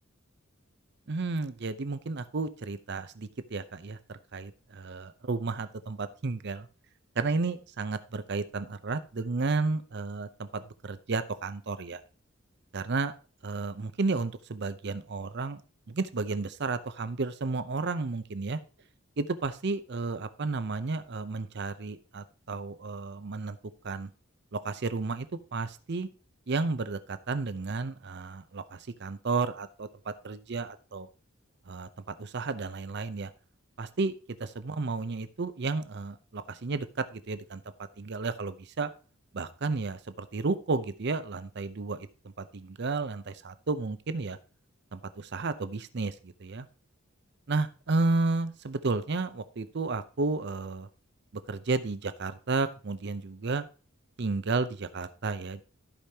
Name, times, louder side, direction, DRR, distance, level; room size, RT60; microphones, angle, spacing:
voice 1, 1.1-6.7 7.2-12.0 12.7-13.1 13.4-15.6 15.9-18.6 19.2-23.6 23.8-24.1 24.5-25.3 25.5-26.1 26.5-31.1 31.7-33.3 33.8-34.1 34.4-37.6 38.0-38.9 39.3-42.1 42.4-44.4 44.9-46.7 47.5-50.9 51.5-53.7 54.2-55.6, right 3 dB, 55° right, 12 dB, 0.6 m, -32 dB
15.0 x 5.1 x 2.8 m, 0.35 s
head